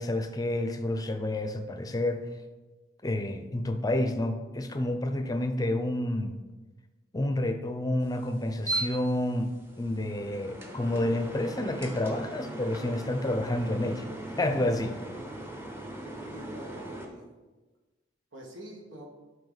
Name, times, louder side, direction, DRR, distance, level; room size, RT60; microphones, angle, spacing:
voice 1, 0.0-2.3 3.0-6.4 7.1-14.1 14.4-15.0, left 1 dB, 20° left, 7 dB, 0.6 m, -29 dB
sound 1, 8.0-17.1, right 2 dB, 15° right, 0.8 m, -39 dB
voice 2, 16.0-17.3 18.3-19.1, equal, 80° right, 0 dB, 1.6 m, -46 dB
10.5 x 4.8 x 4.0 m, 1.2 s
head